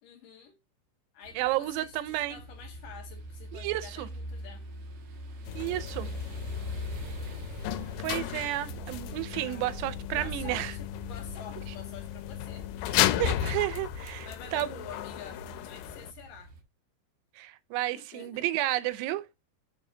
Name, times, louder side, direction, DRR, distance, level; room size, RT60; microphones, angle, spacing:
voice 1, 0.0-0.6 1.1-4.6 9.4-9.7 10.1-13.1 14.3-16.5 17.9-18.5, left 7 dB, 70° left, 2.3 m, -48 dB
sound 1, 1.2-16.6, right 1 dB, 60° right, 2.1 m, -43 dB
voice 2, 1.4-2.4 3.5-4.1 5.6-6.1 8.0-10.7 13.2-14.7 17.4-19.3, right 15 dB, 90° right, 2.8 m, -31 dB
sound 2, 5.5-16.1, left 13 dB, 90° left, 2.7 m, -34 dB
7.0 x 6.9 x 2.7 m
omnidirectional pair, 4.8 m